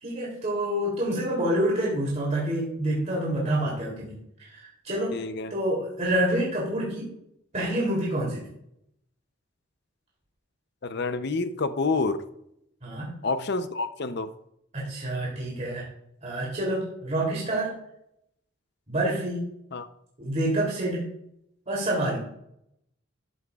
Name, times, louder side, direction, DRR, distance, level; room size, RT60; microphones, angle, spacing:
voice 1, 0.0-5.2 5.5-7.0 7.5-8.4 12.8-13.2 14.7-15.8 16.2-17.7 18.9-19.4 20.2-21.0 21.7-22.2, right 1 dB, 35° right, -4 dB, 2.9 m, -27 dB
voice 2, 5.1-5.5 10.8-12.2 13.2-14.3 19.7-19.9, left 3 dB, 55° left, 11 dB, 0.6 m, -28 dB
13.5 x 8.8 x 2.4 m, 0.77 s
head